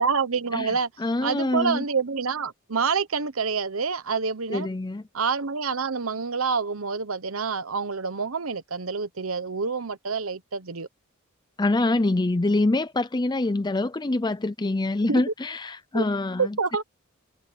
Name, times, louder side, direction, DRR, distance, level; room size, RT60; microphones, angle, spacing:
voice 1, 0.0-0.9 1.2-4.7 5.1-10.9 15.1-15.2 15.9-16.0 16.4-16.8, right 5 dB, 75° right, 1.1 m, -27 dB
voice 2, 1.0-1.8 4.5-5.0 11.6-16.6, left 2 dB, 20° left, 0.5 m, -25 dB
head